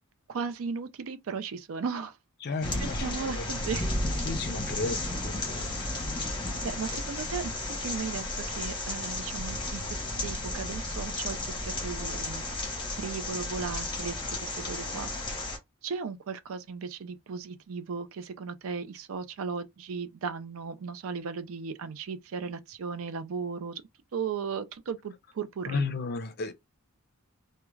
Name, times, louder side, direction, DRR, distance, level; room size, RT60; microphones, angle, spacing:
voice 1, 0.3-2.2 2.8-3.9 6.6-7.5 7.8-12.6 13.0-15.3 15.8-23.8 24.1-25.9, right 5 dB, 70° right, 0.4 m, -36 dB
voice 2, 2.4-3.4 4.2-5.7 6.9-7.0 25.7-26.5, left 3 dB, 50° left, 0.5 m, -34 dB
sound 1, 2.6-15.6, left 2 dB, 20° left, 0.8 m, -33 dB
2.3 x 2.1 x 3.1 m
head